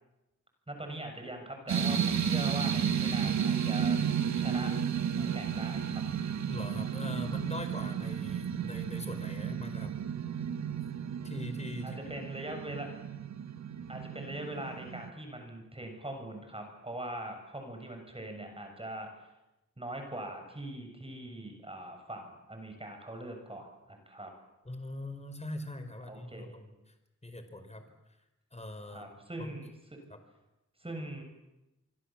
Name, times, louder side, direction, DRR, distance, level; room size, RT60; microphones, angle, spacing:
voice 1, 0.7-4.0 4.3-6.0 11.8-12.9 13.9-19.1 19.8-24.3 26.1-26.5 28.9-29.7 30.8-31.2, right 1 dB, 20° right, 4 dB, 7.1 m, -42 dB
sound 1, 1.7-15.1, right 8 dB, 70° right, 1.3 m, -32 dB
voice 2, 6.5-9.9 11.2-12.0 24.6-26.9 27.2-27.9 28.5-29.5 30.1-30.2, left 1 dB, 20° left, 8 dB, 4.8 m, -42 dB
26.0 x 25.0 x 7.5 m, 0.98 s
wide cardioid pair, 85°, 29 cm